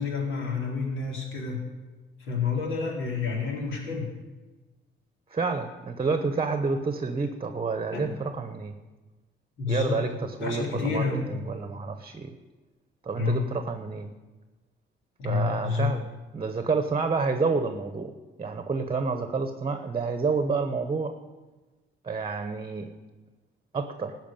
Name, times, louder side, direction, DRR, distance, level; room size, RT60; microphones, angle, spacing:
voice 1, 0.0-1.6 2.2-4.1 7.9-8.1 9.6-10.1 10.4-11.3 13.1-13.5 15.2-15.9, left 5 dB, 80° left, -1 dB, 3.8 m, -29 dB
voice 2, 5.3-8.8 9.7-11.1 11.5-12.3 13.0-14.1 15.2-16.1 16.3-21.1 22.0-22.9 23.7-24.2, right 4 dB, 30° right, 9 dB, 1.0 m, -29 dB
14.0 x 6.0 x 9.0 m, 1.2 s
cardioid pair, 90°, 20 cm